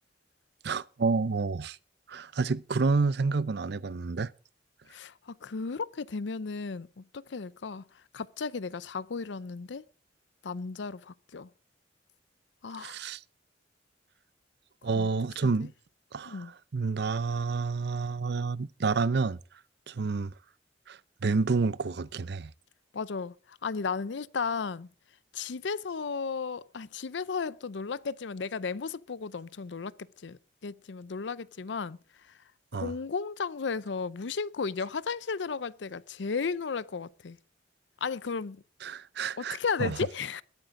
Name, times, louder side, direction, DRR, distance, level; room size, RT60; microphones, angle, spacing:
voice 1, 0.6-1.8 2.1-4.3 12.8-13.2 14.8-15.7 16.1-16.5 16.7-19.4 19.9-20.3 20.9-22.5 32.7-32.9 38.8-40.0, right 4 dB, 60° right, 0.5 m, -29 dB
voice 2, 4.9-7.8 8.1-9.8 10.4-11.5 12.6-13.0 14.9-15.1 15.4-15.7 16.3-16.5 22.9-24.9 25.3-32.3 32.7-37.4 38.0-38.6 39.4-40.4, left 5 dB, 75° left, 0.6 m, -34 dB
21.0 x 9.1 x 3.7 m
head